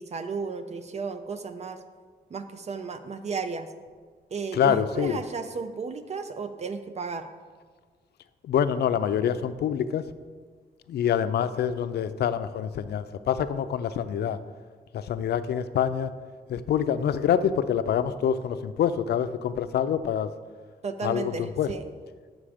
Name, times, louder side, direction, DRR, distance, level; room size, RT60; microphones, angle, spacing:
voice 1, 0.0-1.8 2.3-3.7 4.3-7.3 20.8-21.8, right 5 dB, 40° right, 9 dB, 0.4 m, -34 dB
voice 2, 4.5-5.2 8.4-10.1 10.9-14.4 14.9-16.1 16.5-20.3 21.0-21.7, left 8 dB, 85° left, 12 dB, 0.4 m, -26 dB
7.2 x 6.0 x 4.9 m, 1.5 s
wide cardioid pair, 125°, 17 cm